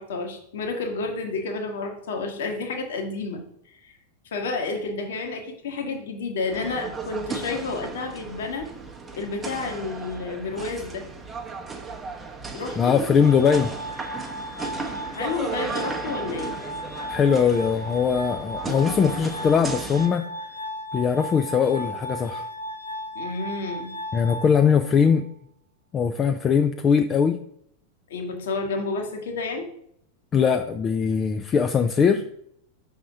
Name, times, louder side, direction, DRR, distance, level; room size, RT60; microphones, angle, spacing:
voice 1, 0.0-3.4 3.7-3.9 4.3-8.7 9.2-11.0 12.5-12.9 15.1-16.6 23.1-23.9 28.1-29.7, left 3 dB, 60° left, 3 dB, 1.3 m, -30 dB
sound 1, 6.5-20.1, right 4 dB, 15° right, 0.8 m, -35 dB
voice 2, 12.8-13.7 17.1-20.2 20.9-22.4 24.1-25.2 25.9-27.4 30.3-32.2, left 6 dB, 25° left, 8 dB, 0.4 m, -21 dB
Glass, 13.2-25.2, equal, 75° left, 0.7 m, -36 dB
6.0 x 3.6 x 5.6 m, 0.70 s
figure-of-eight pair, 90°, 0 cm